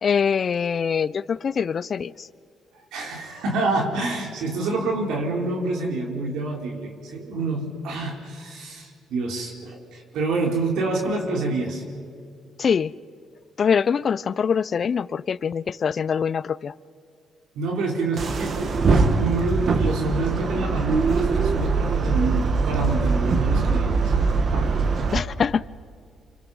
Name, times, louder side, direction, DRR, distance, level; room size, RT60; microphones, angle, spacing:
voice 1, 0.0-2.3 12.6-12.9 13.6-16.7 25.1-25.6, left 6 dB, 50° left, 19 dB, 0.5 m, -23 dB
voice 2, 2.9-11.8 17.5-24.1 24.5-24.8, right 2 dB, 85° right, 0 dB, 3.9 m, -27 dB
sound 1, 18.2-25.2, right 4 dB, 50° right, 1.6 m, -22 dB
28.5 x 25.0 x 5.5 m, 2.3 s
cardioid pair, 90°, 0 cm